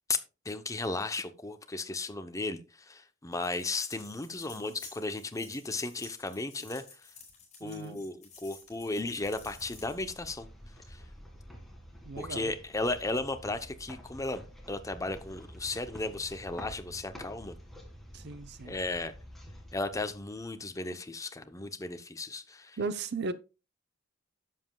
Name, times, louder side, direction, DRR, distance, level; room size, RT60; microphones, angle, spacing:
voice 1, 0.1-6.8 7.6-10.5 10.9-11.0 12.2-14.4 14.7-17.6 18.6-19.1 19.7-22.8, left 2 dB, 15° left, 0.7 m, -35 dB
sound 1, 3.3-10.3, left 5 dB, 35° left, 4.7 m, -52 dB
voice 2, 7.6-8.0 12.0-12.5 18.1-18.8 20.9-21.0 22.8-23.3, right 4 dB, 55° right, 0.7 m, -36 dB
sound 2, 8.6-20.7, equal, ahead, 1.9 m, -49 dB
11.0 x 7.5 x 2.3 m
head